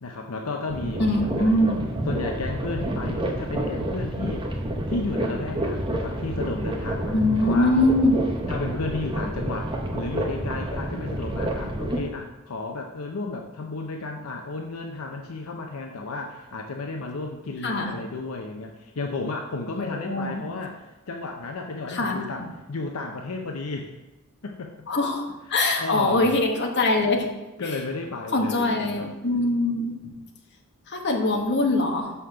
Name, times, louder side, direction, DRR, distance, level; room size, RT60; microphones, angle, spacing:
voice 1, 0.0-1.6 2.0-4.4 4.9-7.8 8.5-23.9 24.4-24.7 25.5-26.3 27.6-29.1, left 3 dB, 75° left, 3 dB, 0.7 m, -33 dB
sound 1, 0.7-12.0, right 1 dB, 25° right, 1.0 m, -29 dB
voice 2, 1.0-1.8 7.1-8.3 17.6-17.9 19.8-20.4 21.9-22.5 24.9-25.2 25.5-27.3 28.3-29.9 30.9-32.1, left 2 dB, 50° left, 2 dB, 1.2 m, -23 dB
6.5 x 5.6 x 5.7 m, 1.1 s
head